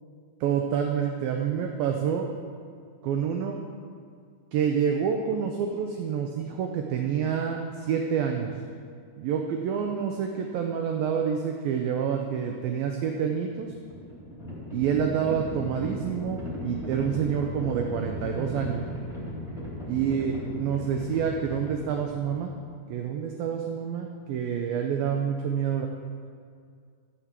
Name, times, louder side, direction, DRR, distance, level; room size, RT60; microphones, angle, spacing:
voice 1, 0.4-2.3 3.0-3.6 4.5-8.5 9.2-13.7 14.7-18.9 19.9-22.5 22.9-25.9, right 7 dB, 85° right, 3 dB, 2.0 m, -28 dB
Livestock farm animals working animals, 13.6-22.6, left 1 dB, ahead, 2.8 m, -36 dB
13.5 x 6.3 x 7.3 m, 2.2 s
omnidirectional pair, 5.0 m